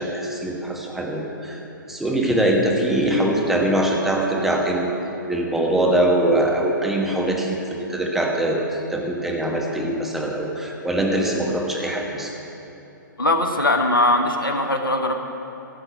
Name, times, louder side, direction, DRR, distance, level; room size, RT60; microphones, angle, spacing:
voice 1, 0.0-1.6 1.9-4.9 5.3-12.3, right 1 dB, 5° right, -1 dB, 1.4 m, -22 dB
voice 2, 13.2-15.2, left 1 dB, 90° left, 4 dB, 1.2 m, -20 dB
15.5 x 6.1 x 8.3 m, 3.0 s
figure-of-eight pair, 130°, 11 cm